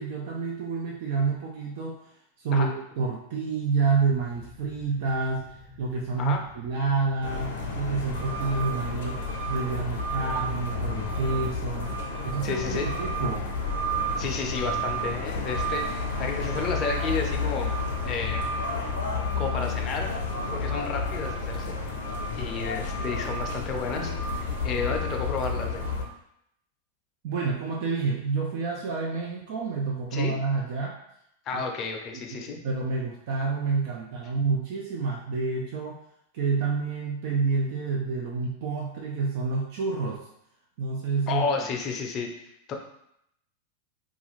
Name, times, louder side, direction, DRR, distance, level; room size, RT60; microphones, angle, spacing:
voice 1, 0.0-2.1 2.4-5.4 5.8-11.9 12.2-13.5 27.2-31.0 31.5-31.6 32.3-36.0 36.3-40.3 40.8-41.7, right 4 dB, 60° right, -2 dB, 0.4 m, -28 dB
sound 1, 3.7-22.1, left 2 dB, 5° right, 0.7 m, -49 dB
sound 2, 7.2-26.0, left 2 dB, 80° left, 0.7 m, -30 dB
voice 2, 12.4-12.9 14.2-17.7 18.0-18.5 19.4-20.1 20.5-21.8 22.3-25.8 30.1-30.4 31.5-32.6 41.3-42.7, left 4 dB, 35° left, 2 dB, 0.5 m, -31 dB
2.4 x 2.4 x 3.1 m, 0.76 s
hypercardioid pair, 125°, 0 cm